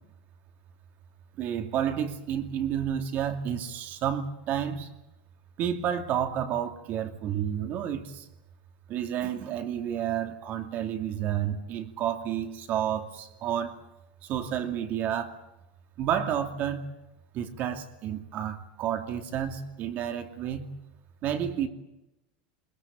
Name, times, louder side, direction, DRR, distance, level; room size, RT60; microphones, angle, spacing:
voice 1, 1.4-4.9 5.6-8.2 8.9-13.8 14.3-15.4 16.0-16.8 17.3-20.7 21.2-21.7, right 9 dB, 40° right, 2.5 m, -30 dB
21.5 x 20.5 x 8.7 m
supercardioid pair, 145°, 5 cm